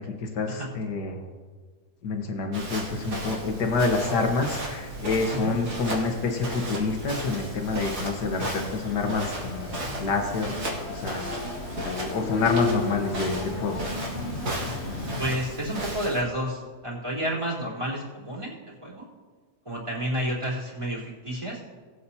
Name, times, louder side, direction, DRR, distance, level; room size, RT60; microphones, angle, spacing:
voice 1, 0.2-1.2 2.0-10.6 10.9-11.3 11.8-13.9, left 3 dB, 75° left, 3 dB, 1.9 m, -27 dB
Walk footsteps, 2.5-16.2, right 1 dB, 70° right, 2.9 m, -35 dB
sound 1, 8.1-15.4, left 4 dB, 45° left, 1.1 m, -35 dB
voice 2, 15.2-18.5 18.8-19.1 19.7-21.6, equal, 15° right, -8 dB, 3.6 m, -30 dB
19.0 x 8.4 x 2.8 m, 1.5 s
omnidirectional pair, 1.8 m